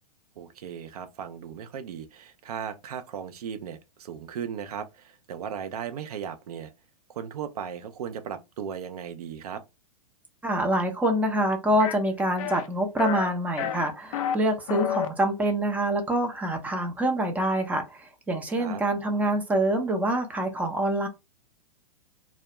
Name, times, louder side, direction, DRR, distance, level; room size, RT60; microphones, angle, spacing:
voice 1, 0.4-6.7 7.1-9.6 18.6-18.8, right 8 dB, 70° right, 0.6 m, -36 dB
voice 2, 10.4-21.1, right 1 dB, 10° right, 0.6 m, -26 dB
sound 1, 11.8-12.0 12.4-12.7 13.0-13.3 13.6-14.4 14.7-15.1, left 8 dB, 60° left, 0.4 m, -29 dB
2.3 x 2.0 x 2.9 m
hypercardioid pair, 115°, 20 cm